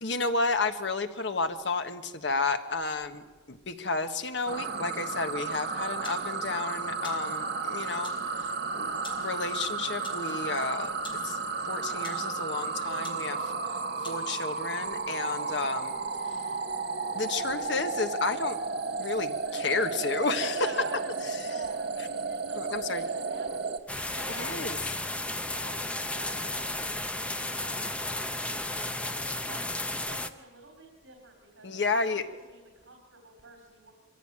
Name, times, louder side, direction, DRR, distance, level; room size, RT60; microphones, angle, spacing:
voice 1, 0.0-8.5 8.7-10.9 11.2-11.4 11.6-13.5 14.0-15.9 17.1-18.6 19.0-20.6 22.6-23.0 24.4-24.8 31.6-32.2, left 3 dB, 65° left, 8 dB, 1.5 m, -31 dB
sound 1, 4.5-23.8, right 4 dB, 55° right, 1.3 m, -33 dB
sound 2, 6.0-6.3 7.0-7.3 8.0-8.2 9.0-9.3 10.0-10.2 11.0-11.3 12.0-12.3 13.0-13.3 14.0-14.2, left 3 dB, 25° left, 4.4 m, -45 dB
voice 2, 15.0-15.4 20.5-24.8 25.5-33.9, right 3 dB, 85° right, 2 dB, 3.7 m, -48 dB
sound 3, 23.9-30.3, left 1 dB, 5° left, 0.8 m, -33 dB
24.0 x 15.5 x 8.9 m, 1.3 s
head